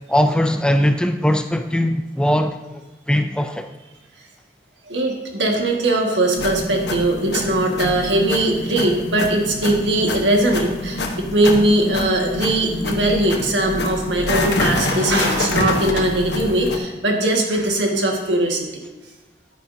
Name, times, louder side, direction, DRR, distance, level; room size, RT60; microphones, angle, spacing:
voice 1, 0.1-2.8 3.1-3.7, equal, 5° left, 7 dB, 0.3 m, -20 dB
voice 2, 4.9-18.8, right 1 dB, 90° right, 1 dB, 1.6 m, -20 dB
sound 1, 6.4-16.8, left 2 dB, 75° left, 1.0 m, -26 dB
10.5 x 9.5 x 2.7 m, 1.1 s
head